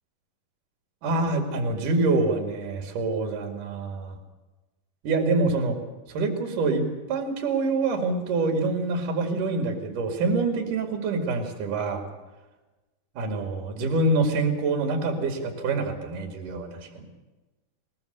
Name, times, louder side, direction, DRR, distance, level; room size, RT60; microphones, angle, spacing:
voice 1, 1.0-4.2 5.0-5.8 6.1-12.1 13.2-17.1, right 3 dB, 65° right, 4 dB, 3.8 m, -26 dB
22.0 x 20.0 x 6.8 m, 1.1 s
omnidirectional pair, 4.0 m